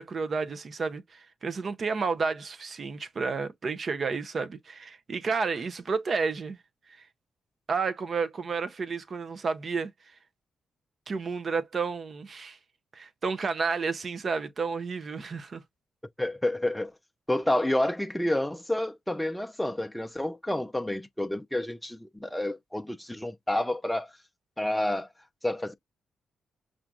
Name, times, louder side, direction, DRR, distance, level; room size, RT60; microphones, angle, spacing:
voice 1, 0.0-6.6 7.7-9.9 11.1-12.6 12.9-15.6, right 4 dB, 45° right, 0.6 m, -31 dB
voice 2, 16.2-16.9 17.3-24.1 24.6-25.1 25.4-25.7, left 1 dB, 5° left, 0.4 m, -29 dB
5.8 x 2.4 x 2.4 m
cardioid pair, 90°, 0 cm